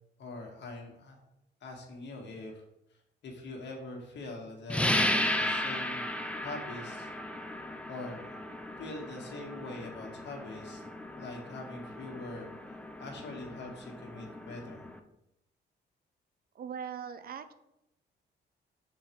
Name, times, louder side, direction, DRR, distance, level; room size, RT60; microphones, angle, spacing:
voice 1, 0.2-1.2 1.6-2.6 3.2-5.0 5.3-6.1 6.4-7.1 7.9-8.3 8.8-10.8 11.2-12.5 13.0-14.8, left 2 dB, 65° left, 1 dB, 1.7 m, -43 dB
sound 1, 4.7-15.0, left 1 dB, 5° left, 0.5 m, -35 dB
voice 2, 16.5-17.5, right 7 dB, 50° right, 11 dB, 0.5 m, -40 dB
6.1 x 4.0 x 4.5 m, 0.86 s
cardioid pair, 90°, 20 cm